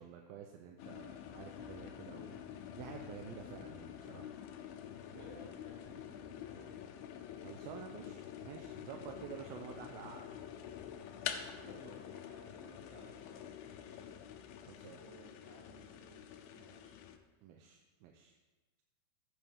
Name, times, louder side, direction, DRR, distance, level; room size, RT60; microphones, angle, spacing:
voice 1, 0.0-2.4 2.7-4.3 5.2-5.3 7.4-10.2 14.7-15.0 17.4-18.4, right 8 dB, 80° right, 2 dB, 2.5 m, -50 dB
sound 1, 0.8-17.2, left 9 dB, 80° left, 2.3 m, -47 dB
voice 2, 5.1-6.8 11.3-14.1 14.9-17.1, right 1 dB, 60° right, -6 dB, 5.0 m, -59 dB
14.5 x 8.1 x 3.5 m, 1.2 s
omnidirectional pair, 4.4 m